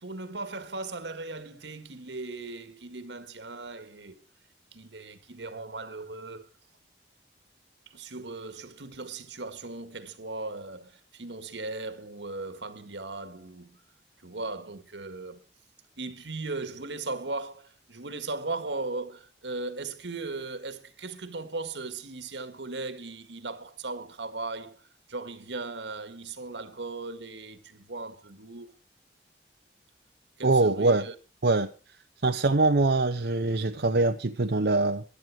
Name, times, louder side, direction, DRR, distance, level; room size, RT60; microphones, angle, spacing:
voice 1, 0.0-4.2 4.7-6.5 7.9-13.8 14.2-15.4 16.0-28.8 30.4-31.1, right 3 dB, 90° right, 1.8 m, -38 dB
voice 2, 30.4-31.1 31.4-31.7 32.2-35.0, right 3 dB, 70° right, 0.7 m, -23 dB
15.5 x 11.5 x 4.9 m
head